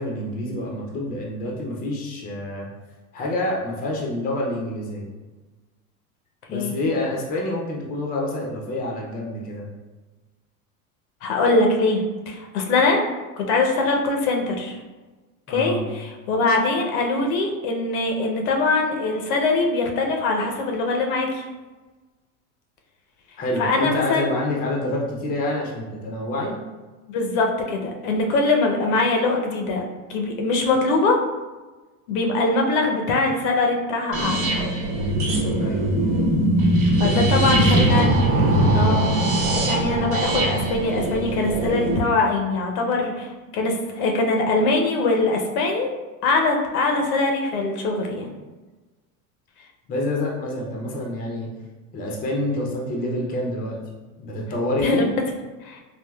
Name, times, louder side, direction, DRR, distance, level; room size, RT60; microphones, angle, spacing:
voice 1, 0.0-2.7 3.1-5.1 6.5-9.6 15.5-15.8 23.4-26.6 35.6-35.8 37.0-38.0 49.9-51.5 51.9-53.8 54.2-55.1, left 1 dB, 20° left, -2 dB, 0.5 m, -27 dB
voice 2, 11.2-13.0 13.4-14.8 15.5-21.4 23.6-24.3 27.1-29.8 30.1-31.2 32.1-34.5 37.0-38.2 38.7-39.1 39.5-43.3 43.5-45.9 46.2-48.3 54.8-55.0 55.6-55.8, left 3 dB, 70° left, 2 dB, 0.7 m, -22 dB
sound 1, 34.1-42.0, right 1 dB, 65° right, 0.9 m, -21 dB
3.4 x 2.3 x 2.2 m, 1.2 s
supercardioid pair, 120°, 45 cm